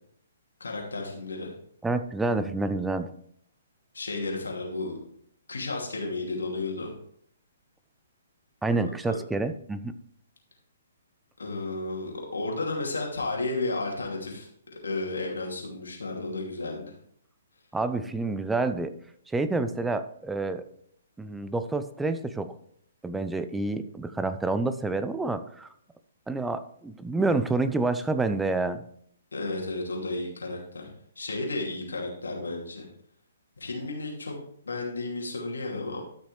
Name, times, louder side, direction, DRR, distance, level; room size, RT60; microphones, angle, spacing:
voice 1, 0.6-1.5 3.9-5.0 5.5-6.9 8.8-9.2 11.4-14.5 14.8-16.9 29.3-30.9 31.2-32.9 33.6-34.3 34.6-36.0, left 2 dB, 80° left, -1 dB, 2.7 m, -33 dB
voice 2, 1.8-3.1 8.6-9.9 17.7-18.9 19.3-20.7 21.2-22.5 23.0-25.7 26.3-28.8, right 3 dB, 5° right, 10 dB, 0.6 m, -28 dB
12.5 x 6.2 x 3.3 m, 0.66 s
figure-of-eight pair, 130°, 0 cm